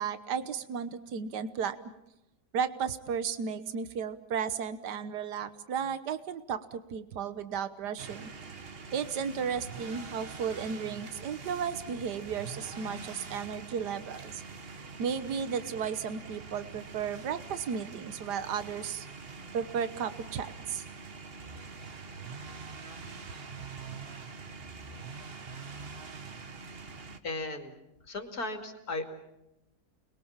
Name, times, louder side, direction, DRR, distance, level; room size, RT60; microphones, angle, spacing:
voice 1, 0.0-1.8 2.5-8.3 8.9-14.4 15.0-19.1 19.5-20.8 23.6-23.7, right 7 dB, 80° right, 12 dB, 1.7 m, -34 dB
sound 1, 8.0-27.2, right 4 dB, 40° right, 1.5 m, -44 dB
voice 2, 27.2-27.8 28.1-29.0, left 2 dB, 65° left, 5 dB, 3.1 m, -36 dB
30.0 x 22.0 x 7.3 m, 0.88 s
omnidirectional pair, 1.8 m